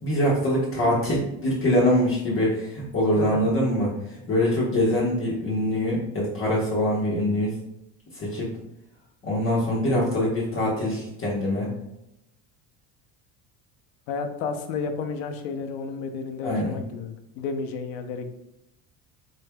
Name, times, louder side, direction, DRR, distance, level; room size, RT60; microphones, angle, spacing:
voice 1, 0.0-7.5 8.1-8.5 9.2-11.7 16.4-16.8, left 1 dB, 35° left, -6 dB, 1.0 m, -24 dB
voice 2, 3.2-3.5 14.1-18.3, left 5 dB, 85° left, 6 dB, 0.6 m, -32 dB
4.1 x 3.3 x 2.2 m, 0.83 s
cardioid pair, 120°, 39 cm